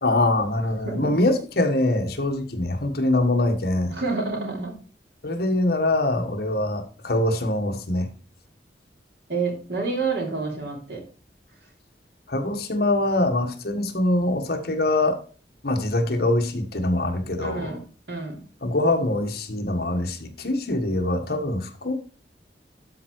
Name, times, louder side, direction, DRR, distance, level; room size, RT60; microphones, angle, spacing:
voice 1, 0.0-3.9 5.2-8.1 12.3-15.2 15.6-17.7 18.6-21.9, left 2 dB, 60° left, 4 dB, 1.5 m, -23 dB
voice 2, 0.8-1.1 3.9-4.8 9.3-11.0 17.4-17.8 18.1-18.4, right 4 dB, 70° right, 0 dB, 3.1 m, -28 dB
12.5 x 4.6 x 4.6 m, 0.39 s
head